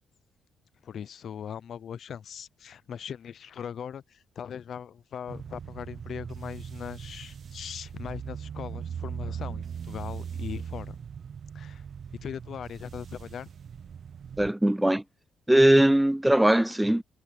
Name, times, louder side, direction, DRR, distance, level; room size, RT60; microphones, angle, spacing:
voice 1, 0.8-11.0 11.5-11.8 12.2-13.5, left 8 dB, 60° left, 0.7 m, -40 dB
sound 1, 5.3-14.5, right 8 dB, 55° right, 0.8 m, -39 dB
voice 2, 14.4-15.0 15.5-17.0, right 1 dB, 5° right, 0.4 m, -20 dB
cardioid pair, 90°, 0 cm